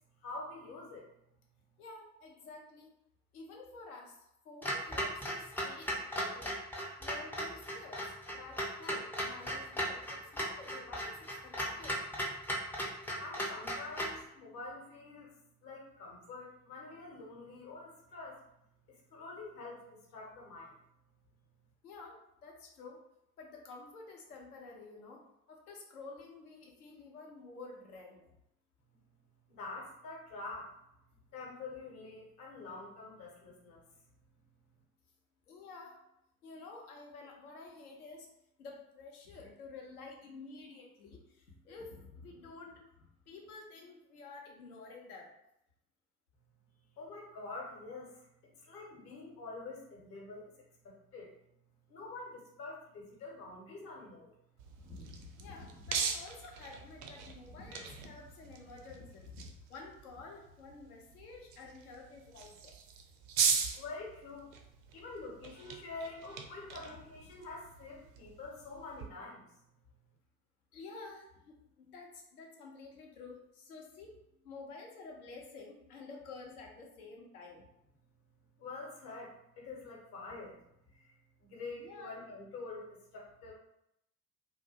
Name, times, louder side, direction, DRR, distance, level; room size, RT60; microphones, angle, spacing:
voice 1, 0.2-1.1 13.2-15.3 15.6-18.4 18.9-20.8 29.5-30.7 31.3-33.8 46.9-51.3 51.9-54.3 63.7-64.5 64.9-69.5 78.6-80.6 80.9-81.1 81.4-83.5, left 3 dB, 55° left, -2 dB, 0.9 m, -46 dB
voice 2, 1.8-2.9 3.3-4.2 4.4-6.5 7.0-12.0 21.8-23.0 23.4-25.2 25.5-28.3 35.5-36.0 36.4-38.3 38.6-45.3 54.8-62.8 70.7-77.6 81.8-82.1, left 3 dB, 80° left, 0 dB, 0.7 m, -50 dB
Clock, 4.6-14.2, equal, 5° left, 0.3 m, -37 dB
sound 1, 54.6-69.1, right 6 dB, 55° right, 0.5 m, -40 dB
2.3 x 2.1 x 2.7 m, 0.79 s
figure-of-eight pair, 55°, 44 cm